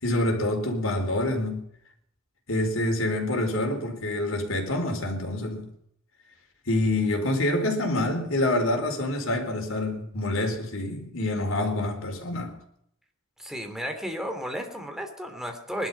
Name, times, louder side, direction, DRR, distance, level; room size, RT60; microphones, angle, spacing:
voice 1, 0.0-1.6 2.5-5.7 6.7-12.6, left 1 dB, 70° left, 4.4 m, -27 dB
voice 2, 13.4-15.9, equal, ahead, 3.1 m, -33 dB
20.5 x 12.0 x 5.6 m
head